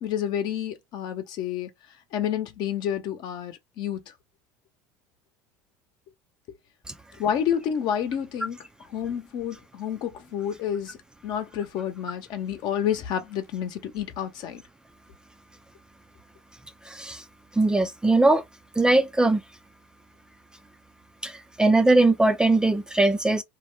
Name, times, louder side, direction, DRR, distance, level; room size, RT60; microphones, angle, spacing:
voice 1, 0.0-1.7 2.1-4.0 7.2-8.6 8.9-11.0 11.2-14.6, left 9 dB, 60° left, 0.8 m, -29 dB
voice 2, 16.9-17.2 17.5-18.4 18.8-19.4 21.2-23.4, right 2 dB, 10° right, 0.4 m, -20 dB
2.7 x 2.1 x 3.2 m
supercardioid pair, 95°, 8 cm